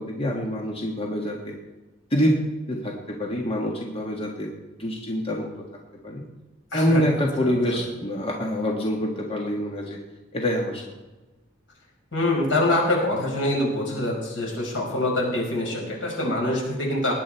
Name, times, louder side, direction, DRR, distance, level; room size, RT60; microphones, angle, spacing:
voice 1, 0.0-1.5 2.1-2.4 2.7-4.5 4.8-5.5 6.0-6.2 6.7-10.0 10.3-10.8, equal, 30° left, 0 dB, 1.5 m, -26 dB
voice 2, 6.7-7.0 7.4-7.5 12.1-17.1, left 1 dB, 80° left, -1 dB, 5.3 m, -25 dB
19.0 x 10.0 x 4.4 m, 1.1 s
head